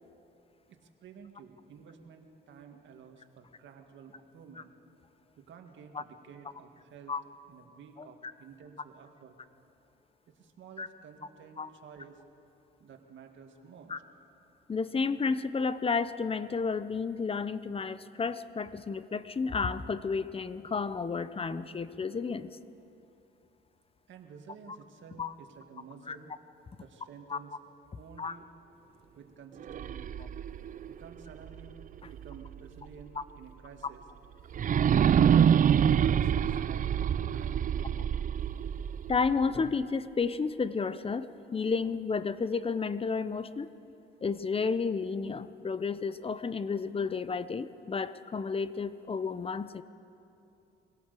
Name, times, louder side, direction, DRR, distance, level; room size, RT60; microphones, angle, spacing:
voice 1, 0.7-4.7 5.4-7.2 7.5-9.4 10.3-12.2 12.8-13.9 24.1-26.3 26.8-27.6 28.0-28.5 29.2-30.2 30.9-31.8 32.1-34.0 34.5-35.2 35.8-36.3 36.6-37.1 37.3-38.1, right 6 dB, 70° right, 4 dB, 2.0 m, -51 dB
voice 2, 14.7-22.6 25.2-25.3 26.1-26.2 27.3-27.4 28.2-28.4 33.2-33.3 39.1-41.3 41.5-43.7 44.2-49.8, left 5 dB, 30° left, 14 dB, 0.8 m, -31 dB
sound 1, 29.6-32.6 33.0-33.1 34.5-39.6, right 8 dB, 40° right, 0.4 m, -26 dB
24.0 x 16.5 x 6.8 m, 2.8 s
cardioid pair, 90°, 20 cm